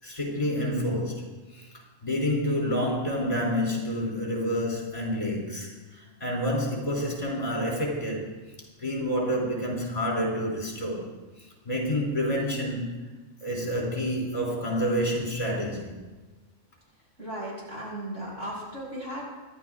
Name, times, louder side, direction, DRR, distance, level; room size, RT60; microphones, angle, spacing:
voice 1, 0.0-1.3 1.5-1.7 2.0-8.4 8.8-11.1 11.4-13.0 13.4-15.9, equal, 30° left, -2 dB, 3.7 m, -28 dB
voice 2, 17.2-19.2, right 1 dB, 60° right, -5 dB, 7.0 m, -36 dB
27.0 x 11.5 x 3.7 m, 1.2 s
omnidirectional pair, 1.4 m